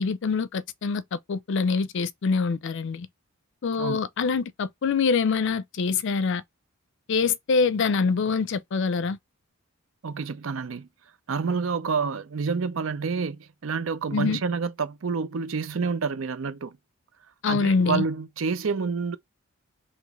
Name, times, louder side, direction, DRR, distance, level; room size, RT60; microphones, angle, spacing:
voice 1, 0.0-3.1 3.6-6.4 7.1-9.2 14.1-14.4 17.4-18.0, left 5 dB, 60° left, 0.4 m, -25 dB
voice 2, 10.0-10.9 11.3-16.8 17.5-19.2, right 5 dB, 65° right, 0.5 m, -28 dB
3.0 x 2.9 x 3.5 m
head